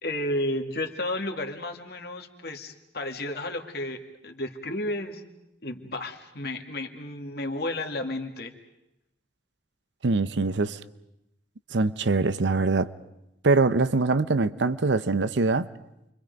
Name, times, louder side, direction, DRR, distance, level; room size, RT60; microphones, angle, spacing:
voice 1, 0.0-5.2 5.6-8.5, left 1 dB, 60° left, 2.0 m, -32 dB
voice 2, 10.0-10.8 11.7-12.9 13.4-15.7, right 3 dB, 85° right, 0.8 m, -23 dB
29.5 x 24.5 x 5.3 m
head